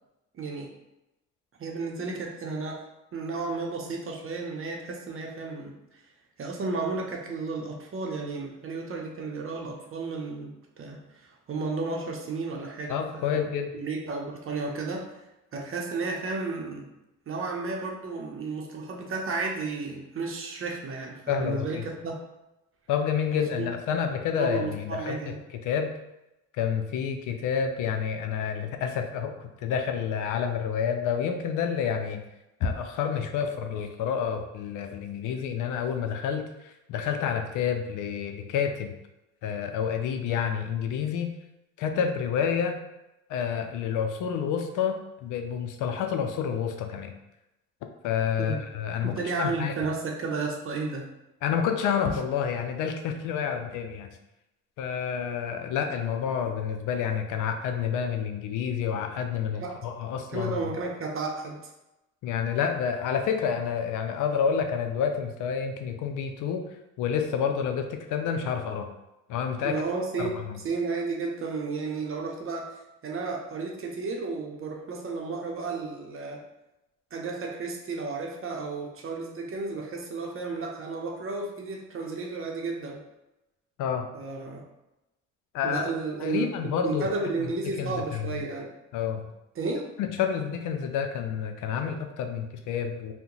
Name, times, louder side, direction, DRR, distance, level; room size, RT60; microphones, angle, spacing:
voice 1, 0.3-0.7 1.6-2.8 3.1-5.7 6.4-13.4 13.7-15.1 15.5-16.9 17.3-22.1 23.3-23.7 24.4-25.4 48.4-48.6 49.0-51.1 59.6-59.8 60.3-61.7 69.6-76.4 77.1-83.0 84.1-84.6 85.6-86.5 86.8-88.7 89.6-89.9, right 3 dB, 45° right, 1 dB, 0.7 m, -33 dB
voice 2, 12.9-13.7 21.3-21.8 22.9-25.9 26.5-32.2 32.6-38.9 39.4-41.3 41.8-42.8 43.3-47.1 48.0-49.7 51.4-54.2 54.8-60.7 62.2-66.6 67.0-68.9 69.3-69.8 70.2-70.6 83.8-84.1 85.5-85.9 86.2-87.1 87.4-87.5 87.8-88.4 88.9-89.3 90.0-93.1, left 7 dB, 85° left, 5 dB, 0.5 m, -29 dB
2.8 x 2.1 x 3.8 m, 0.95 s
cardioid pair, 90°, 30 cm